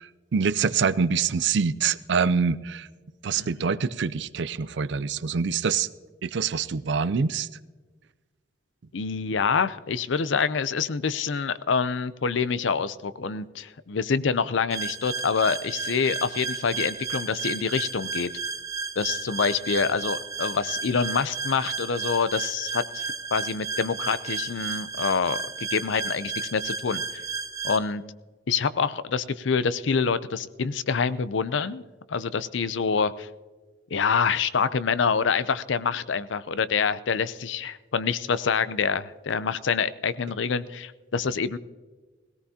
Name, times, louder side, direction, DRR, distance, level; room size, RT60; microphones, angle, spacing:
voice 1, 0.0-2.9 3.2-5.9 6.2-7.5, right 5 dB, 70° right, 16 dB, 0.4 m, -25 dB
voice 2, 8.9-18.3 19.0-27.2 27.6-28.0 28.5-31.8 32.1-33.3 33.9-41.6, left 5 dB, 75° left, 15 dB, 0.5 m, -26 dB
sound 1, 14.7-27.8, right 4 dB, 15° right, 0.7 m, -33 dB
18.0 x 17.5 x 2.8 m, 1.3 s
head